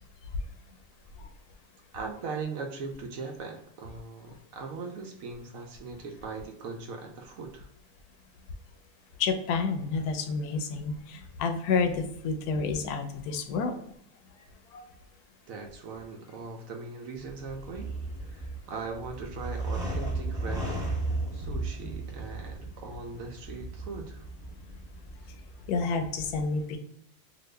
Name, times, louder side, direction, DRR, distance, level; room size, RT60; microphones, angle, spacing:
voice 1, 1.9-7.7 15.5-24.3, right 4 dB, 70° right, 3 dB, 0.9 m, -40 dB
voice 2, 9.2-13.8 14.7-14.8 25.7-26.8, left 4 dB, 75° left, 7 dB, 1.0 m, -29 dB
sound 1, 17.2-25.7, right 2 dB, 5° right, 0.5 m, -35 dB
2.9 x 2.5 x 3.2 m, 0.73 s
omnidirectional pair, 1.7 m